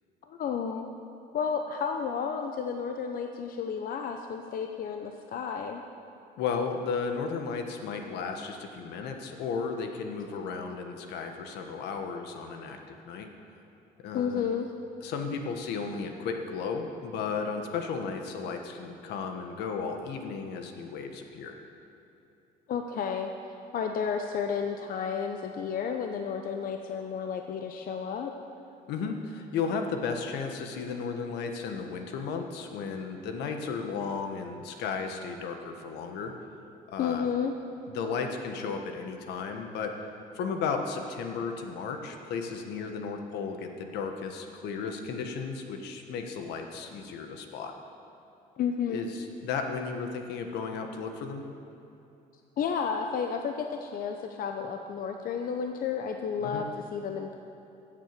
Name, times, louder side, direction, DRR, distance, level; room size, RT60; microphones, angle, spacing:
voice 1, 0.3-0.9 1.3-5.8 14.1-14.7 22.7-23.3 23.7-28.3 37.0-37.5 48.6-49.1 52.6-56.7 56.9-57.4, left 6 dB, 55° left, 5 dB, 0.8 m, -32 dB
voice 2, 6.4-13.3 14.0-14.4 15.0-21.5 28.9-36.3 36.9-37.3 37.9-39.9 40.3-47.7 48.9-51.4 56.4-56.6, left 5 dB, 80° left, 5 dB, 1.4 m, -34 dB
16.0 x 7.6 x 6.7 m, 3.0 s
cardioid pair, 110°, 17 cm